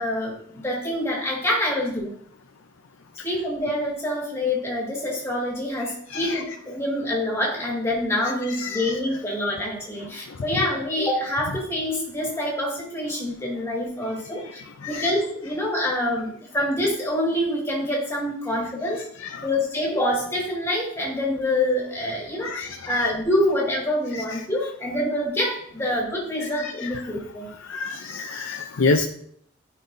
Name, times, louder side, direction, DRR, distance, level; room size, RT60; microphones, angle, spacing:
voice 1, 0.0-2.1 3.2-14.4 14.9-19.0 19.4-27.5, left 1 dB, 15° left, -3 dB, 1.8 m, -26 dB
voice 2, 6.1-6.4 8.5-9.0 10.3-10.6 14.4-15.1 19.2-19.5 22.4-23.1 24.1-24.4 26.4-27.1 27.5-29.1, left 3 dB, 85° left, 4 dB, 0.5 m, -29 dB
10.0 x 5.4 x 2.6 m, 0.66 s
head